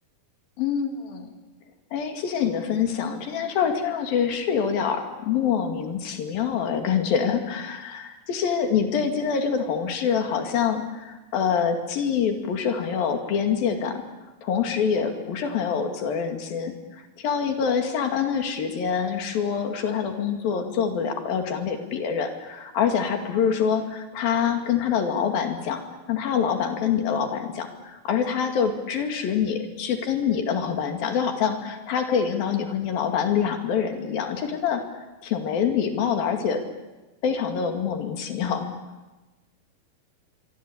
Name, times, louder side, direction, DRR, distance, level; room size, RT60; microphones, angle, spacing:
voice 1, 0.6-1.3 1.9-13.9 14.4-16.7 17.2-25.8 26.1-34.8 35.2-36.6 37.2-38.7, left 7 dB, 85° left, 5 dB, 4.1 m, -25 dB
25.5 x 24.0 x 8.7 m, 1.1 s
omnidirectional pair, 4.0 m